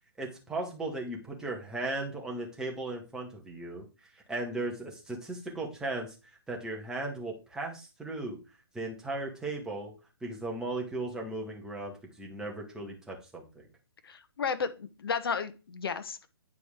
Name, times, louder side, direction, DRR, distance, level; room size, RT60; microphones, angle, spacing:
voice 1, 0.2-3.9 4.1-8.4 8.7-9.9 10.2-13.7, right 2 dB, 5° right, -1 dB, 1.8 m, -37 dB
voice 2, 14.0-16.3, left 6 dB, 65° left, 11 dB, 1.1 m, -33 dB
9.4 x 4.7 x 3.7 m, 0.30 s
hypercardioid pair, 140°, 13 cm